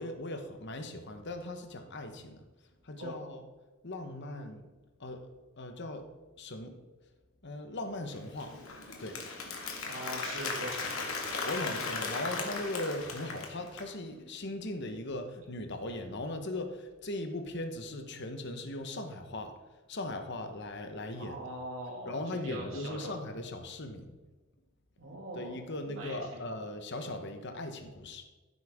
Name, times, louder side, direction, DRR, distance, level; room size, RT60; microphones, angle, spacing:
voice 1, 0.0-2.5 2.8-3.4 3.8-4.7 5.0-5.3 5.6-6.1 6.4-6.8 7.4-9.7 11.4-19.5 19.9-21.4 22.0-24.2 25.3-28.2, left 1 dB, 55° left, 6 dB, 1.2 m, -39 dB
Applause, 8.1-13.9, left 3 dB, 85° left, 2.1 m, -37 dB
voice 2, 9.8-11.1 21.1-22.1 22.4-23.1 25.0-25.6 25.9-26.4, right 1 dB, 70° right, -3 dB, 2.4 m, -42 dB
15.0 x 8.2 x 3.7 m, 1.3 s
head